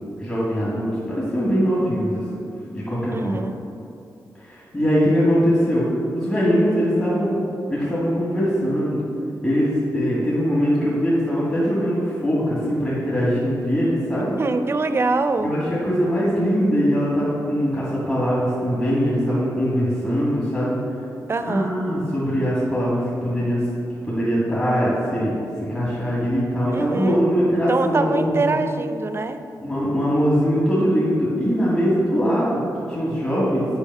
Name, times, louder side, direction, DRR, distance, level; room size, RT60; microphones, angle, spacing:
voice 1, 0.2-2.2 2.7-3.4 4.4-5.9 6.1-7.4 7.7-9.1 9.4-14.4 15.4-20.8 21.5-23.6 24.1-28.7 29.6-32.6 32.9-33.7, equal, 30° left, -8 dB, 1.9 m, -21 dB
voice 2, 3.1-3.6 14.4-15.5 21.3-21.7 26.7-27.2 27.7-29.4, right 3 dB, 35° right, 9 dB, 0.5 m, -23 dB
7.1 x 5.2 x 5.4 m, 2.7 s
wide cardioid pair, 100°, 7 cm